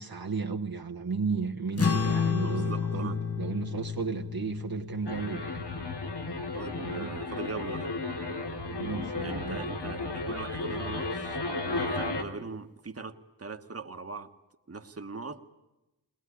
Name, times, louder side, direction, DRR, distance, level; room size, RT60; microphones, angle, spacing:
voice 1, 0.0-5.6 6.5-7.1 8.7-9.8, right 5 dB, 65° right, 4 dB, 1.2 m, -34 dB
sound 1, 1.8-8.4, left 5 dB, 35° left, 1.0 m, -32 dB
voice 2, 2.4-3.2 6.5-7.9 9.2-14.3 14.7-15.5, right 4 dB, 35° right, 7 dB, 1.4 m, -41 dB
sound 2, 5.0-12.2, left 3 dB, 85° left, 2.6 m, -34 dB
21.5 x 20.5 x 10.0 m, 0.98 s
wide cardioid pair, 75°, 40 cm